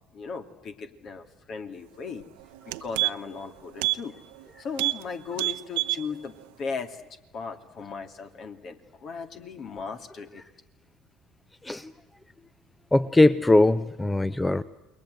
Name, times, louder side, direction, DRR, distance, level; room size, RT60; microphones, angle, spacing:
voice 1, 0.1-2.2 2.6-4.1 4.6-10.4, left 5 dB, 50° left, 7 dB, 2.5 m, -37 dB
sound 1, 2.1-2.2 2.5-3.4 3.8-4.0 4.3-4.4 4.7-5.0 5.3-6.0 6.4-6.5, right 23 dB, 75° right, 0.8 m, -28 dB
voice 2, 12.9-14.6, left 2 dB, 15° left, 16 dB, 0.8 m, -20 dB
28.5 x 21.5 x 8.0 m, 1.1 s
hypercardioid pair, 65°, 0 cm